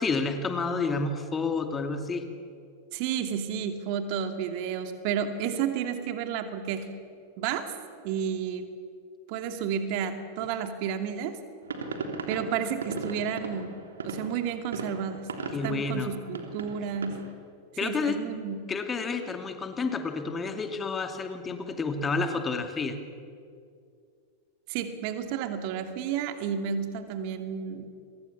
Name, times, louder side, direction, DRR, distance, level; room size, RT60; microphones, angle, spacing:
voice 1, 0.0-2.3 15.5-16.1 17.8-18.2 18.7-23.0, left 4 dB, 20° left, 6 dB, 2.5 m, -30 dB
voice 2, 2.9-6.9 7.4-7.7 8.0-8.7 9.3-11.4 12.3-15.3 15.6-17.3 17.8-18.6 24.7-27.9, right 8 dB, 45° right, 7 dB, 2.4 m, -31 dB
sound 1, 11.6-17.3, right 3 dB, 65° right, 3.2 m, -37 dB
29.5 x 24.0 x 7.2 m, 2.4 s
figure-of-eight pair, 90°, 0 cm